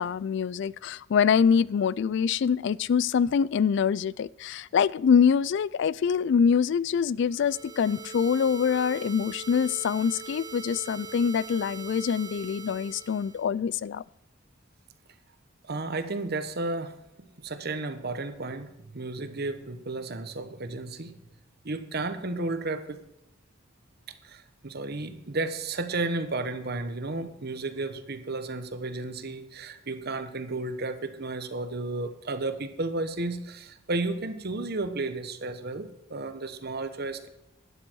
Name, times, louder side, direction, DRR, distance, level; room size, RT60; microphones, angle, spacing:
voice 1, 0.0-14.0, left 6 dB, 60° left, 21 dB, 0.3 m, -25 dB
sound 1, 7.3-13.4, right 4 dB, 20° right, 1.0 m, -42 dB
voice 2, 15.6-16.9 17.2-21.2 21.6-23.0 24.2-37.3, right 2 dB, 55° right, 10 dB, 1.2 m, -33 dB
12.0 x 9.8 x 4.6 m, 0.87 s
head